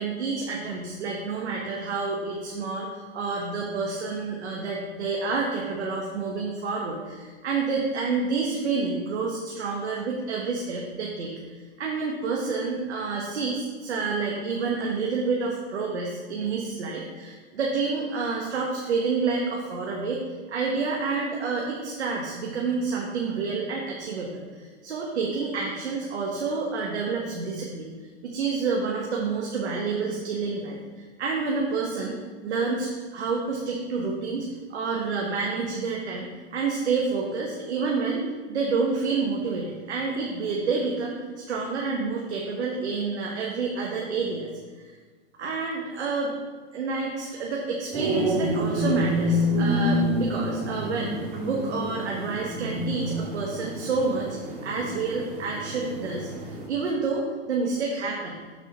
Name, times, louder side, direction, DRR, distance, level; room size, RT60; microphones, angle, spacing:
voice 1, 0.0-11.3 11.8-20.2 20.5-27.9 28.2-30.8 31.2-32.2 32.4-44.5 45.4-46.3 46.7-51.1 51.4-54.3 54.6-58.4, right 4 dB, 85° right, -1 dB, 1.3 m, -29 dB
sound 1, 47.9-56.7, equal, 40° right, 2.1 m, -28 dB
6.7 x 4.6 x 5.3 m, 1.5 s
hypercardioid pair, 115°, 33 cm